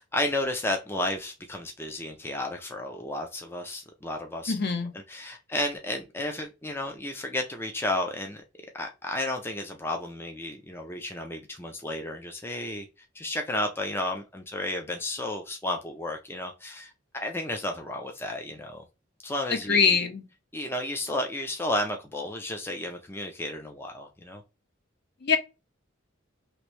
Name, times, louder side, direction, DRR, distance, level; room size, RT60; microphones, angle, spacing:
voice 1, 0.0-4.5 4.9-8.4 8.8-12.9 13.1-18.8 19.2-19.9 20.5-24.4, left 1 dB, 10° left, 0.4 m, -32 dB
voice 2, 4.5-4.9 19.7-20.2 25.2-25.4, left 5 dB, 55° left, 0.7 m, -23 dB
3.0 x 2.6 x 3.1 m
head